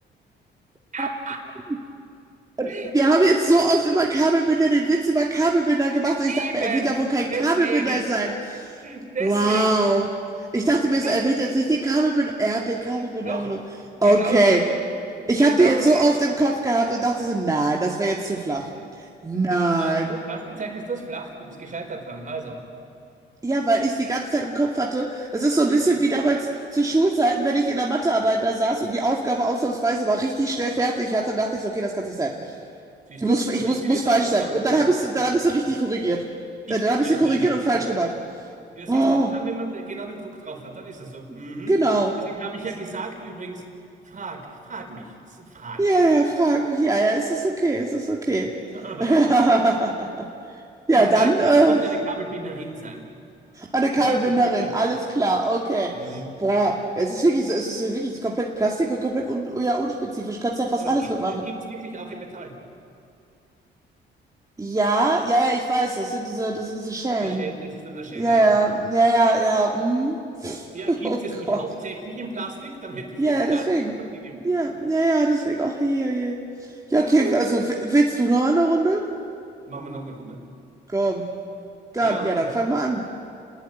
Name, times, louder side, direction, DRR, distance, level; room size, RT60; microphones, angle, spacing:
voice 1, 0.9-1.4 2.6-2.9 5.4-5.5 6.3-7.0 7.3-8.2 8.8-9.8 11.0-11.2 12.9-13.5 14.0-14.7 15.4-16.1 18.8-18.9 19.5-22.6 25.7-26.2 33.1-34.8 35.2-35.3 36.7-37.5 38.7-41.8 42.2-43.6 44.0-46.1 48.7-49.4 50.9-53.1 53.9-54.5 54.9-55.0 55.9-56.3 60.8-62.5 67.2-68.5 70.7-73.7 74.0-74.4 76.9-77.5 79.6-80.4 82.0-82.5, right 3 dB, 40° right, 4 dB, 4.9 m, -34 dB
voice 2, 2.6-8.3 9.2-10.1 10.5-13.6 14.0-14.6 15.3-18.7 19.2-20.1 23.4-26.4 26.7-32.3 33.2-36.3 36.7-38.1 38.9-39.3 41.7-42.1 45.8-48.5 49.0-50.3 50.9-51.8 53.6-55.9 56.4-61.4 64.6-67.5 68.1-71.2 71.5-71.6 73.2-73.9 74.4-76.4 76.9-79.0 80.9-81.3 81.9-83.0, right 2 dB, 15° right, -1 dB, 2.4 m, -21 dB
29.5 x 20.5 x 9.4 m, 2.4 s
cardioid pair, 90°, 20 cm